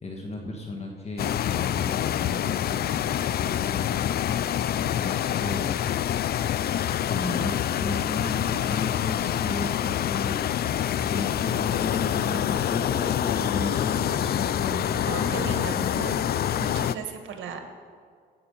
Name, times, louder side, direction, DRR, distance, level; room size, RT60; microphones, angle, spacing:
voice 1, 0.0-3.1 3.4-4.0 4.7-5.8 7.1-10.3 11.1-16.0, left 3 dB, 35° left, 0 dB, 1.6 m, -34 dB
sound 1, 1.2-16.9, left 10 dB, 55° left, 0.4 m, -26 dB
voice 2, 15.0-16.2 16.6-17.6, right 6 dB, 75° right, 6 dB, 1.5 m, -36 dB
16.0 x 5.7 x 6.9 m, 2.1 s
cardioid pair, 90°, 20 cm